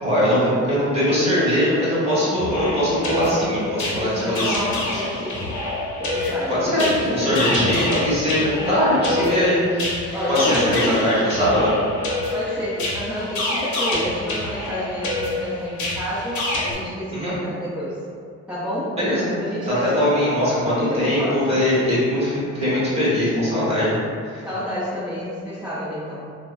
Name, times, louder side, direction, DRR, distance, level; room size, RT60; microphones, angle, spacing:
voice 1, 0.0-4.7 6.5-9.6 10.0-11.7 17.1-17.3 19.0-19.3 19.7-24.0 24.2-24.4, equal, 20° right, -9 dB, 1.3 m, -21 dB
sound 1, 2.4-16.7, left 2 dB, 75° left, 0.8 m, -27 dB
voice 2, 3.9-5.6 6.0-7.4 8.4-8.8 9.1-9.6 10.1-11.7 12.3-18.0 18.5-19.0 19.4-21.9 24.4-26.2, equal, 5° right, -14 dB, 0.8 m, -29 dB
sound 2, 4.4-8.0 8.3-8.9 10.0-11.3 12.2-12.8, left 2 dB, 35° left, 0.4 m, -33 dB
2.9 x 2.2 x 2.5 m, 2.2 s
cardioid pair, 90°, 30 cm